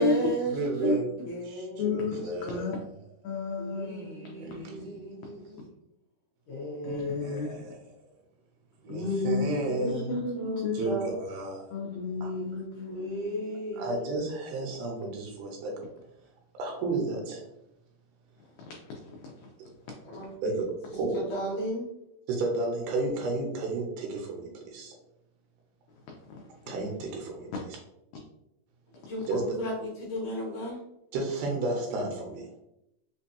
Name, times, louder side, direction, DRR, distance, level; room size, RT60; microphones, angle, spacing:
voice 1, 0.0-0.6 0.8-2.0 3.6-5.7 6.5-7.6 8.9-9.3 9.7-9.9 10.3-11.1 12.2-14.0 20.0-20.3 21.3-21.9 29.1-30.8, equal, 70° left, -5 dB, 2.1 m, -35 dB
voice 2, 0.5-2.9 4.4-5.0 7.2-8.0 8.8-10.2 10.7-11.7 12.2-12.3 13.8-15.7 16.5-17.5 20.4-21.2 22.3-24.9 26.7-27.5 29.3-29.6 31.1-32.5, right 3 dB, 80° right, 0 dB, 2.6 m, -32 dB
voice 3, 1.8-2.8 3.2-4.9 6.8-7.5 8.9-10.9 11.7-13.4 18.7-19.0 19.2-19.5 26.3-26.4, left 3 dB, 90° left, 0 dB, 1.9 m, -33 dB
5.9 x 2.2 x 2.7 m, 0.84 s
omnidirectional pair, 4.6 m